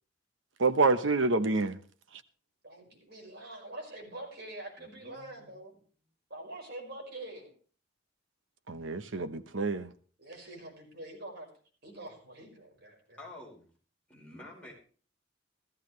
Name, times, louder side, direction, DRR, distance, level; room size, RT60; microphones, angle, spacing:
voice 1, 0.6-1.8 8.7-9.9, right 3 dB, 80° right, 1.0 m, -27 dB
voice 2, 2.6-5.7 6.3-7.5 10.2-11.5 11.8-13.2, right 1 dB, 55° right, 5.3 m, -45 dB
voice 3, 4.8-5.5 13.2-13.7 14.1-14.7, left 1 dB, 5° left, 5.0 m, -49 dB
15.0 x 14.0 x 3.2 m
head